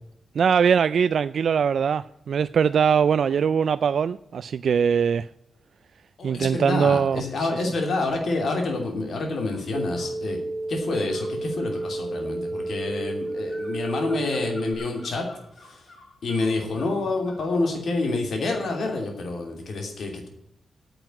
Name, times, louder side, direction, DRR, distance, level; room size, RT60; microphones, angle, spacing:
voice 1, 0.3-5.3 6.2-7.6, right 7 dB, 60° right, 0.3 m, -22 dB
voice 2, 6.2-10.4 10.7-15.3 15.6-15.8 16.2-20.3, left 3 dB, 60° left, 2.9 m, -28 dB
sound 1, 9.5-10.1 11.1-17.6, left 2 dB, 35° left, 5.5 m, -50 dB
sound 2, 9.7-14.7, right 2 dB, 25° right, 2.2 m, -31 dB
9.2 x 7.8 x 9.2 m
wide cardioid pair, 145°, 0 cm